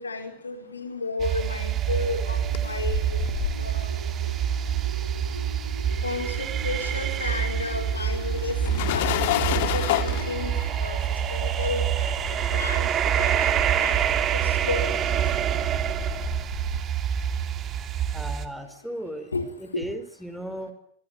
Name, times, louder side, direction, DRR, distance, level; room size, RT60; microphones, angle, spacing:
voice 1, 0.0-3.2 3.6-4.0 6.0-12.2 12.5-14.0 14.3-15.1 19.3-19.5 19.7-19.9, left 3 dB, 75° left, 6 dB, 4.8 m, -33 dB
sound 1, 1.2-18.5, right 9 dB, 30° right, 2.8 m, -26 dB
sound 2, 1.9-10.5, right 3 dB, 80° right, 2.8 m, -41 dB
sound 3, 2.2-5.8 6.1-16.8, left 14 dB, 50° left, 2.1 m, -32 dB
voice 2, 18.1-19.3 19.6-20.7, equal, ahead, 9 dB, 4.7 m, -36 dB
26.0 x 23.0 x 9.2 m, 0.66 s
figure-of-eight pair, 90°, 0 cm